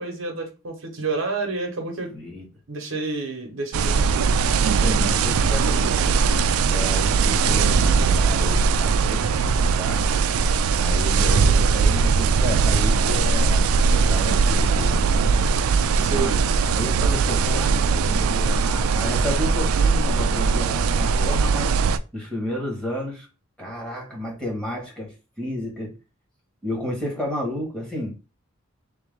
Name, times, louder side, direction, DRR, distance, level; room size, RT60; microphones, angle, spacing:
voice 1, 0.0-2.1 2.7-4.4 16.0-16.3, right 4 dB, 65° right, 2 dB, 1.0 m, -29 dB
voice 2, 2.1-2.4 4.8-10.0 10.8-15.1 16.0-21.7 22.1-23.3 23.6-25.9 26.6-28.1, left 1 dB, 5° left, -2 dB, 1.4 m, -32 dB
sound 1, 3.7-22.0, right 5 dB, 85° right, 0.3 m, -20 dB
sound 2, 4.4-7.7 9.5-12.6 13.1-17.3, right 1 dB, 30° left, 1.6 m, -48 dB
3.5 x 3.0 x 3.6 m, 0.30 s
head